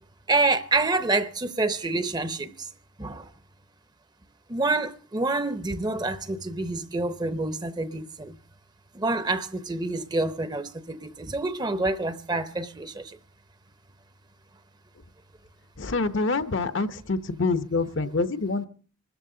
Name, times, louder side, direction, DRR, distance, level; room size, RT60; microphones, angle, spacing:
voice 1, 0.3-2.7 3.0-3.3 4.5-8.4 8.9-13.2, right 3 dB, 20° right, 0.7 m, -27 dB
voice 2, 15.8-18.7, left 3 dB, 60° left, 0.8 m, -26 dB
25.5 x 13.5 x 3.8 m
head